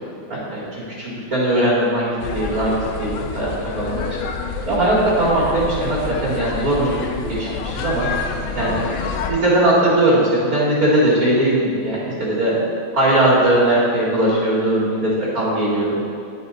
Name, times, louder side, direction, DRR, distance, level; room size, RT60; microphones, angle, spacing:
voice 1, 0.3-4.0 4.7-7.0 7.4-8.1 8.5-8.8 9.3-12.6 12.9-16.1, right 1 dB, 50° right, -9 dB, 2.2 m, -19 dB
sound 1, 2.2-9.3, left 5 dB, 90° left, 1.4 m, -28 dB
10.5 x 4.9 x 4.1 m, 2.4 s
omnidirectional pair, 2.1 m